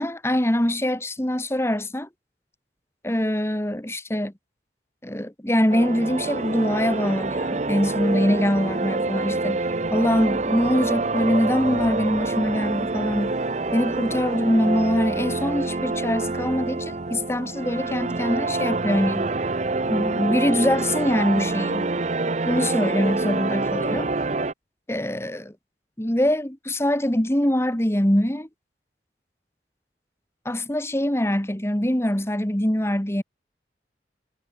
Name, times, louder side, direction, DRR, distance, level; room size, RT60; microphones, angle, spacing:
voice 1, 0.0-2.1 3.0-4.3 5.0-13.4 13.7-19.3 19.9-21.9 22.4-24.1 24.9-25.5 26.0-28.5 30.4-33.2, equal, 15° left, 1.6 m, -23 dB
sound 1, 5.7-24.5, right 3 dB, 40° right, 0.8 m, -26 dB
head